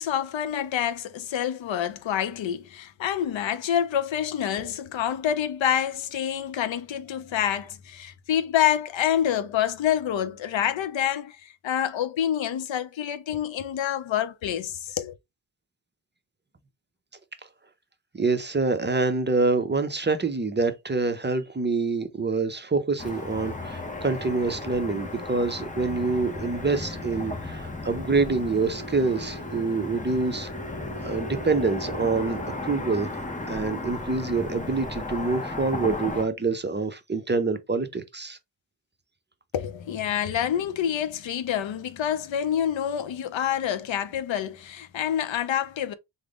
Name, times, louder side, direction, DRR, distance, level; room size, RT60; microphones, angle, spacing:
voice 1, 0.0-15.1 39.5-45.9, left 10 dB, 75° left, 0.6 m, -27 dB
voice 2, 18.1-32.4 32.6-33.2 33.5-38.4, right 3 dB, 25° right, 0.5 m, -26 dB
Car passing by / Traffic noise roadway noise, 23.0-36.3, left 2 dB, 15° left, 0.6 m, -34 dB
3.4 x 2.0 x 3.5 m
cardioid pair, 70°, 46 cm